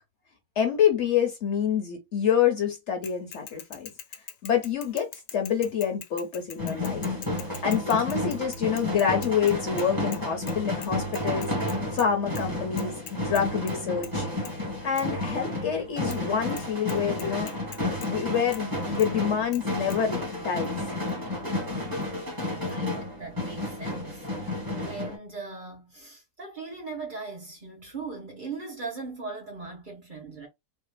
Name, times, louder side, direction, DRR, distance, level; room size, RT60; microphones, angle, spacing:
voice 1, 0.6-3.9 4.4-7.1 7.4-14.3 14.8-17.5 18.0-20.8, left 8 dB, 55° left, 1.0 m, -27 dB
Bicycle / Mechanisms, 3.0-10.2 10.5-10.6 10.8-12.1 12.3-12.4 12.8-13.7 14.0-14.2 14.4-14.5 15.0-15.1 16.1-16.2 16.6-16.7 16.9-18.1 18.5-18.6 19.0-19.1 19.5-19.6 19.9-20.0, left 9 dB, 90° left, 1.2 m, -42 dB
sound 1, 6.6-25.2, left 1 dB, 15° right, 1.5 m, -31 dB
voice 2, 22.4-30.5, right 4 dB, 35° right, 1.0 m, -39 dB
3.6 x 2.4 x 2.2 m
omnidirectional pair, 1.6 m